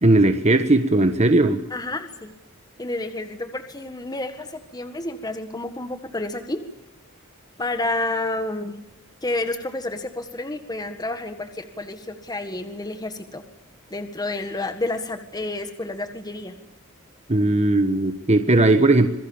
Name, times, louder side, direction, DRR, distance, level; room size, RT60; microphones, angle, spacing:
voice 1, 0.0-1.6 17.3-19.1, right 2 dB, 30° right, 8 dB, 1.4 m, -18 dB
voice 2, 1.7-2.3 2.8-6.6 7.6-8.8 9.2-13.4 13.9-16.5, left 2 dB, 20° left, 8 dB, 1.7 m, -30 dB
27.0 x 22.5 x 7.3 m, 0.92 s
head